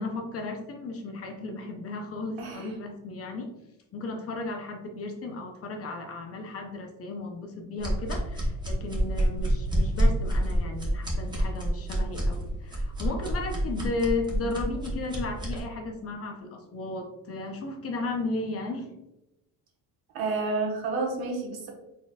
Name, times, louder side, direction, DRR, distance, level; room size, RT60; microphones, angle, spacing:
voice 1, 0.0-3.5 3.9-18.9, left 3 dB, 35° left, 3 dB, 0.6 m, -34 dB
voice 2, 2.4-2.7 20.1-21.7, right 3 dB, 65° right, 0 dB, 1.2 m, -30 dB
sound 1, 7.8-15.6, equal, 10° right, 0.9 m, -27 dB
4.2 x 3.7 x 2.3 m, 0.93 s
cardioid pair, 140°, 39 cm